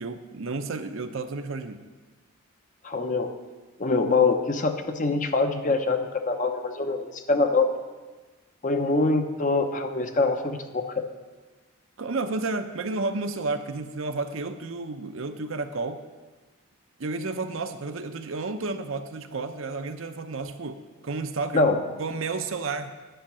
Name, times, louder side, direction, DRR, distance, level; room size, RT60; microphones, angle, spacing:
voice 1, 0.0-1.8 12.0-16.0 17.0-21.6 22.0-22.9, right 3 dB, 60° right, 8 dB, 0.6 m, -31 dB
voice 2, 2.8-3.3 3.8-7.7 8.6-11.0 21.5-21.8, left 3 dB, 35° left, 6 dB, 0.7 m, -24 dB
10.0 x 5.7 x 7.4 m, 1.3 s
head